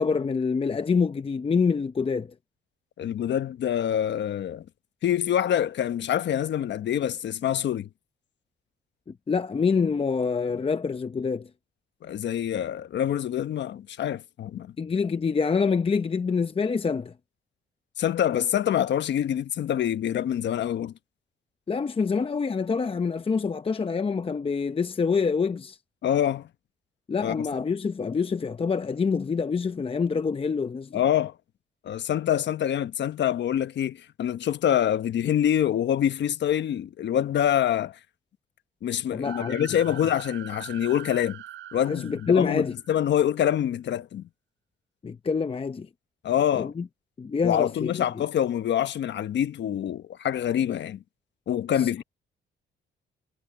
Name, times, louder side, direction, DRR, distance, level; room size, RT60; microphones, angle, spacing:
voice 1, 0.0-2.3 9.3-11.5 14.8-17.1 21.7-25.8 27.1-31.0 39.1-39.7 41.9-42.7 45.0-45.9 46.5-46.8 47.2-48.3 51.8-52.0, left 5 dB, 30° left, 0.7 m, -26 dB
voice 2, 3.0-4.6 5.0-7.9 12.0-14.7 18.0-20.9 26.0-26.5 27.2-27.3 30.9-31.3 31.8-38.0 38.8-41.4 41.7-44.3 46.2-46.7 47.4-51.0 51.5-52.0, left 10 dB, 65° left, 1.2 m, -26 dB
sound 1, 39.2-43.0, right 13 dB, 75° right, 4.0 m, -43 dB
cardioid pair, 90°, 20 cm